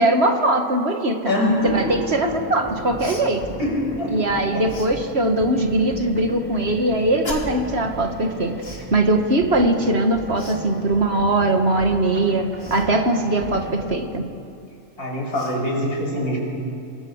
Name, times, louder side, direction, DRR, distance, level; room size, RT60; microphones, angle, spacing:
voice 1, 0.0-1.3 1.6-3.4 4.1-8.6 8.9-14.3, right 2 dB, 45° right, 5 dB, 1.8 m, -21 dB
voice 2, 1.3-2.3 3.6-4.6 15.0-16.4, left 1 dB, 90° left, -1 dB, 6.4 m, -24 dB
sound 1, 1.7-14.0, right 1 dB, 5° right, 1.5 m, -36 dB
Cough, 3.0-3.3 4.7-4.9 7.2-7.7 8.6-8.9 10.4-10.6 12.6-12.9 14.7-14.8 15.3-15.6, left 2 dB, 40° left, 2.7 m, -35 dB
26.5 x 22.5 x 7.3 m, 2.5 s
omnidirectional pair, 1.5 m